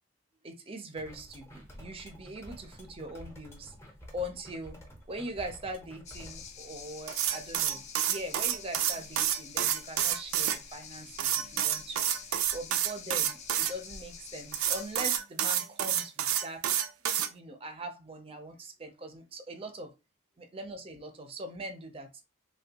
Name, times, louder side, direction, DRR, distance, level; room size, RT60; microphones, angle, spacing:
voice 1, 0.4-3.8 4.1-4.8 5.1-12.0 12.5-16.8 17.3-19.9 20.4-22.2, right 1 dB, 25° right, 0.5 m, -41 dB
sound 1, 1.0-6.5, equal, 15° left, 0.7 m, -50 dB
sound 2, 6.0-15.2, left 6 dB, 35° left, 0.3 m, -47 dB
sound 3, 7.1-10.6 11.2-13.7 14.5-17.3, right 10 dB, 80° right, 0.4 m, -29 dB
3.4 x 2.2 x 2.8 m
head